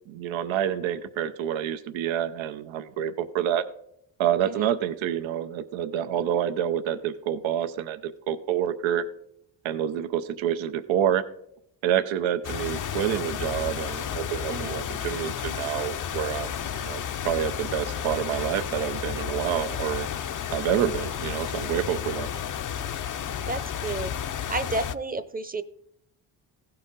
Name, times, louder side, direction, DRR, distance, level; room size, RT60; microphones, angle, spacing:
voice 1, 0.1-3.6 4.2-9.0 9.6-11.2 11.8-20.1 20.5-22.3, right 10 dB, 80° right, 10 dB, 0.7 m, -28 dB
sound 1, 12.4-25.0, left 8 dB, 45° left, 0.6 m, -32 dB
voice 2, 14.5-14.8 23.5-24.1 24.5-25.6, right 2 dB, 20° right, 13 dB, 0.8 m, -31 dB
16.0 x 5.7 x 4.0 m, 0.75 s
supercardioid pair, 65°, 46 cm